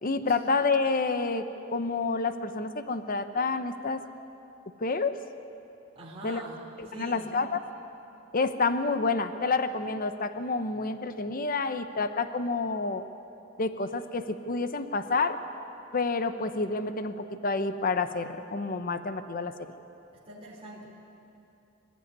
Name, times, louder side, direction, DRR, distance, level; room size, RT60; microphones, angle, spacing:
voice 1, 0.0-4.0 4.8-5.2 6.2-6.4 6.8-7.6 8.3-13.0 13.6-15.4 15.9-19.7, left 3 dB, 45° left, 10 dB, 0.8 m, -29 dB
voice 2, 6.0-7.3 20.1-20.9, right 1 dB, 30° right, -5 dB, 3.9 m, -44 dB
24.0 x 12.5 x 9.5 m, 2.9 s
head